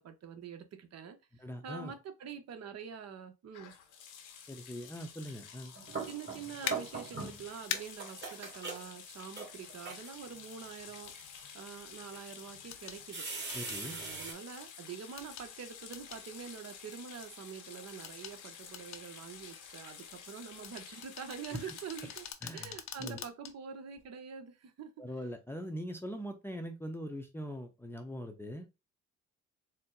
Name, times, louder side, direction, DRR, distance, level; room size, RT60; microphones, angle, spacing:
voice 1, 0.0-3.7 6.0-11.1 11.5-13.3 13.8-22.2 22.5-24.9, right 7 dB, 55° right, 0.9 m, -46 dB
voice 2, 1.4-1.9 4.5-5.7 13.5-14.0 21.5-21.6 22.4-22.7 23.0-23.2 25.0-28.7, equal, 10° left, 0.7 m, -41 dB
sound 1, 3.5-22.3, left 7 dB, 85° left, 1.1 m, -51 dB
sound 2, 5.5-7.5 7.7-10.3 11.0-11.4 12.1-12.2 13.1-14.3, right 4 dB, 35° right, 1.8 m, -41 dB
sound 3, 6.7-6.8 7.7-7.8 9.8-9.9 12.7-13.0 13.5-13.8 15.2-15.5 15.9-16.2 18.0-18.4 18.7-19.0 20.6-23.5 24.0-24.1, left 9 dB, 65° left, 0.7 m, -41 dB
4.4 x 2.1 x 3.8 m
cardioid pair, 90°, 30 cm